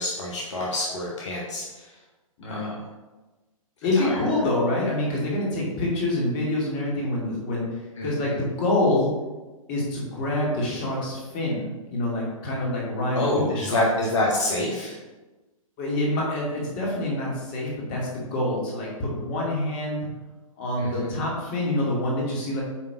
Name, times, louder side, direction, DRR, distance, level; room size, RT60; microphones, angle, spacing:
voice 1, 0.0-1.9 2.5-2.7 4.0-4.1 8.0-8.1 13.1-15.0 20.8-21.1, left 1 dB, 55° left, -4 dB, 1.4 m, -27 dB
voice 2, 2.4-2.7 3.8-9.1 9.7-14.1 15.8-20.1 20.6-22.6, left 1 dB, 30° left, -3 dB, 2.4 m, -26 dB
9.0 x 3.7 x 4.6 m, 1.2 s
figure-of-eight pair, 120°, 18 cm